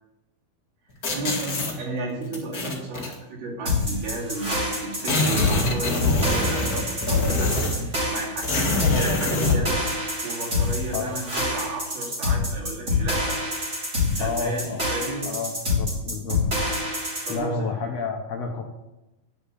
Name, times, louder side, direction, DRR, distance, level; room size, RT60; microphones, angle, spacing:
sound 1, 1.0-1.7 2.3-3.1 4.1-4.2 4.4-4.5 4.8-7.9 8.4-9.6, left 1 dB, 40° left, 1.4 m, -25 dB
voice 1, 1.1-7.5 7.9-9.8 10.2-13.4 14.1-14.6 14.9-15.3 17.3-17.7, right 2 dB, 75° right, -4 dB, 4.7 m, -33 dB
sound 2, 3.7-17.4, left 3 dB, 20° right, 3.3 m, -26 dB
voice 2, 14.2-14.8 15.2-16.4 17.3-18.6, left 4 dB, 90° left, 2 dB, 1.4 m, -30 dB
9.8 x 5.8 x 8.4 m, 0.97 s
omnidirectional pair, 4.4 m